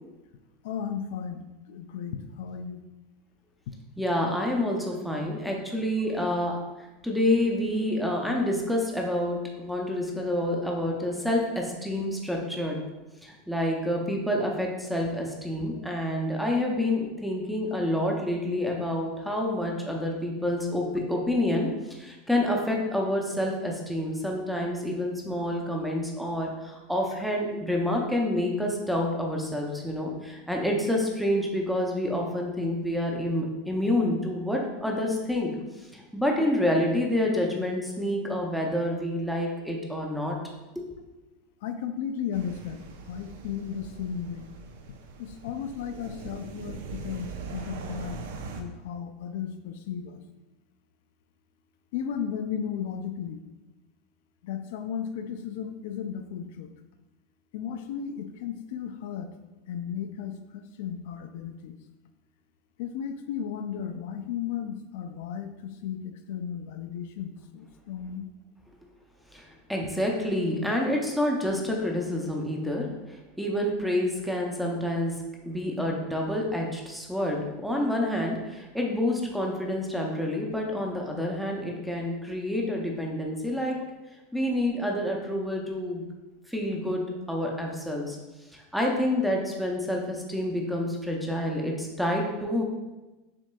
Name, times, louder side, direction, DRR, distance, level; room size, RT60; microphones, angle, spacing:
voice 1, 0.6-2.8 3.7-3.8 41.6-44.5 45.2-48.3 48.6-50.2 51.9-53.4 54.4-56.7 57.5-59.3 59.7-61.8 62.8-68.3, left 8 dB, 60° left, 7 dB, 0.3 m, -35 dB
voice 2, 4.0-12.8 13.2-35.5 35.9-40.4 40.8-40.9 69.3-75.1 75.4-83.8 84.3-86.0 86.5-87.0 87.3-88.2 88.5-92.6, left 1 dB, ahead, 0 dB, 0.5 m, -28 dB
sound 1, 42.3-48.6, right 4 dB, 80° right, 0.5 m, -41 dB
6.1 x 3.7 x 2.2 m, 1.1 s
supercardioid pair, 180°, 0 cm